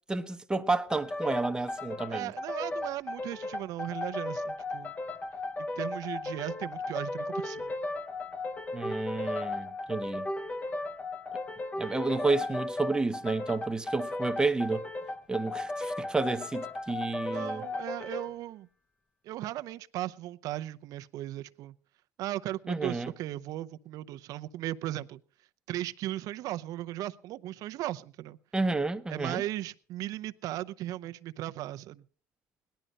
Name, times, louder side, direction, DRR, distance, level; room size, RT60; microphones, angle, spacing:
voice 1, 0.1-2.3 8.7-10.3 11.8-14.9 15.3-17.7 22.7-23.1 28.5-29.4, right 3 dB, 10° right, 0.9 m, -30 dB
sound 1, 0.9-18.3, left 2 dB, 25° left, 1.0 m, -36 dB
voice 2, 2.1-4.9 5.8-7.7 17.3-18.7 19.2-21.8 22.2-25.2 25.7-28.4 29.1-32.0, right 14 dB, 65° right, 0.7 m, -37 dB
18.5 x 11.5 x 5.3 m
cardioid pair, 110°, 6 cm